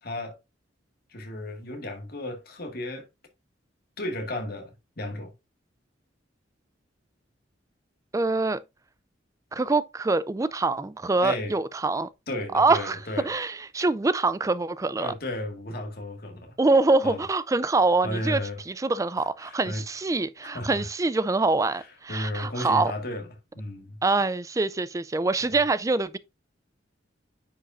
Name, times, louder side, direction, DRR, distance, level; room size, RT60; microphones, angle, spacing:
voice 1, 0.0-0.4 1.1-3.1 4.0-5.3 11.2-11.6 12.3-13.3 15.0-16.5 17.0-17.2 18.0-18.6 19.4-19.8 20.5-20.9 21.7-23.3 23.5-24.0, left 1 dB, 50° left, 1.8 m, -34 dB
voice 2, 8.1-8.6 9.5-12.1 12.5-13.0 13.2-15.1 16.6-18.4 18.7-22.9 24.0-26.2, right 3 dB, 15° right, 0.3 m, -24 dB
9.8 x 5.2 x 2.6 m
head